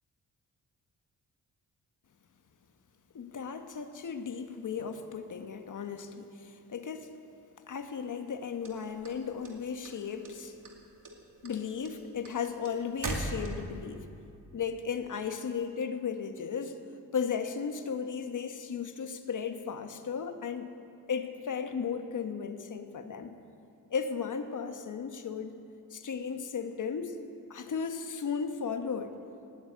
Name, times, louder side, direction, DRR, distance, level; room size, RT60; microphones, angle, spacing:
voice 1, 3.1-7.1 7.7-10.5 11.4-14.1 14.5-16.8 17.1-20.7 21.1-23.3 23.9-25.5 25.9-27.2 27.5-29.2, left 6 dB, 55° left, 7 dB, 1.3 m, -35 dB
sound 1, 8.6-9.9 10.2-10.8 11.0-13.9, right 2 dB, 60° right, 2.5 m, -37 dB
18.5 x 7.9 x 8.8 m, 2.6 s
cardioid pair, 75°, 37 cm